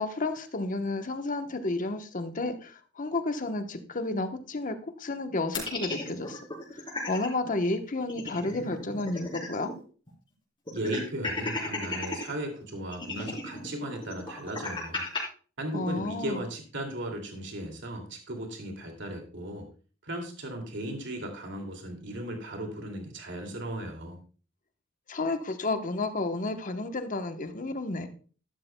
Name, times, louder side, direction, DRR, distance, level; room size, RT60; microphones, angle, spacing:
voice 1, 0.0-6.4 6.7-9.7 15.7-16.5 25.1-28.1, left 2 dB, 40° left, 8 dB, 1.0 m, -31 dB
sound 1, 5.5-7.3 7.6-7.7 8.0-9.8 10.1-10.2 10.7-12.3 12.9-15.2, left 3 dB, 25° left, 3.8 m, -35 dB
voice 2, 10.7-15.0 15.6-19.7 20.0-24.2, right 1 dB, 65° right, 3 dB, 2.5 m, -36 dB
13.0 x 11.5 x 2.2 m, 0.39 s
head